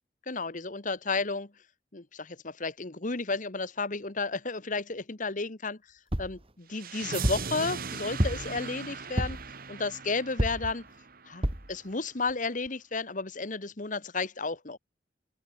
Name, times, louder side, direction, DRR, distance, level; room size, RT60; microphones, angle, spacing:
voice 1, 0.3-1.5 1.9-5.8 6.2-9.4 9.7-10.9 11.2-14.8, left 3 dB, 45° left, 1.5 m, -32 dB
sound 1, 6.1-6.4 7.2-7.5 8.2-8.6 9.2-9.5 10.4-10.7 11.4-11.7 12.3-12.4 12.7-12.8, equal, 30° right, 2.9 m, -29 dB
sound 2, 6.7-11.7, right 5 dB, 55° right, 2.2 m, -39 dB
open air
head